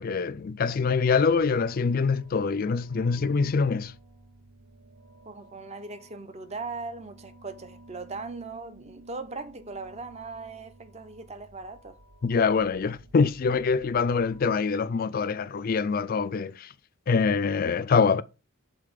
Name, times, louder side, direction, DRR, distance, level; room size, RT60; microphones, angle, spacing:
voice 1, 0.0-4.0 12.2-16.7 17.1-18.2, left 5 dB, 45° left, 0.3 m, -24 dB
sound 1, 0.6-14.5, right 1 dB, 75° right, 0.9 m, -53 dB
voice 2, 5.2-12.0, right 3 dB, 30° right, 0.6 m, -39 dB
6.6 x 4.0 x 5.1 m
head